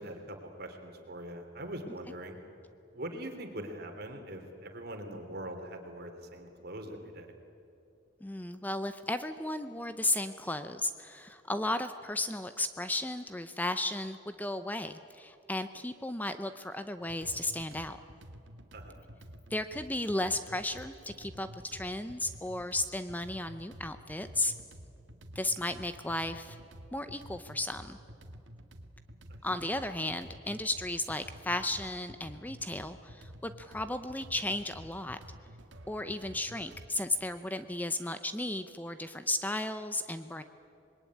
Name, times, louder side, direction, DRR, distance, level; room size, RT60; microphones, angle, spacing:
voice 1, 0.0-2.4 2.9-7.3 18.7-19.0 29.3-29.8, right 1 dB, 55° right, 5 dB, 3.2 m, -42 dB
voice 2, 8.2-18.0 19.5-24.5 25.3-26.6 26.9-28.0 29.4-35.2 35.9-40.4, left 1 dB, 10° left, 10 dB, 0.7 m, -34 dB
sound 1, 17.0-36.9, equal, 80° right, 1.8 m, -51 dB
26.0 x 21.0 x 9.7 m, 2.6 s
head